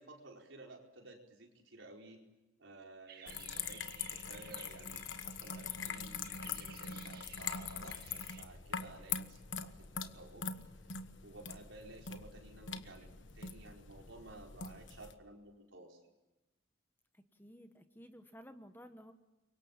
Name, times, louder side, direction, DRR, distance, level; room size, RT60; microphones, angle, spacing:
voice 1, 0.0-2.2 2.6-10.5 10.8-16.0, right 2 dB, 70° right, 1 dB, 4.7 m, -55 dB
sound 1, 3.1-8.4, right 8 dB, 50° right, 1.8 m, -57 dB
sound 2, 3.3-15.1, left 6 dB, 70° left, 1.3 m, -43 dB
voice 2, 17.1-19.1, equal, 10° left, 8 dB, 1.1 m, -55 dB
28.0 x 24.0 x 7.3 m, 1.0 s
head